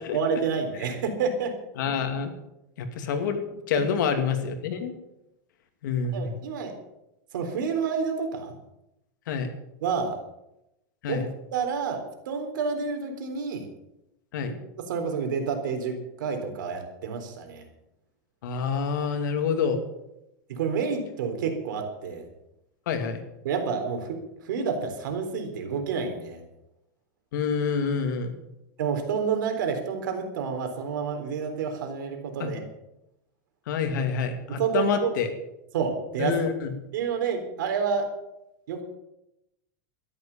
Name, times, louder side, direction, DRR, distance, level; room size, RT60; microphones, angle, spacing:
voice 1, 0.1-1.6 3.7-3.8 6.1-6.7 7.3-8.5 9.8-10.2 11.1-11.3 11.5-13.7 14.4-14.5 14.9-17.6 20.5-22.3 23.4-26.4 28.8-32.6 34.6-35.1 35.7-36.4 36.9-38.1 38.7-38.8, right 6 dB, 85° right, 5 dB, 3.8 m, -29 dB
voice 2, 1.8-2.3 2.8-3.4 3.7-5.0 5.8-6.3 9.3-9.5 11.0-11.3 14.3-14.5 18.4-19.8 22.9-23.2 27.3-28.4 32.4-32.5 33.7-35.3 36.2-36.7, left 6 dB, 75° left, 6 dB, 2.7 m, -27 dB
13.0 x 11.5 x 7.3 m, 0.86 s
supercardioid pair, 165°, 10 cm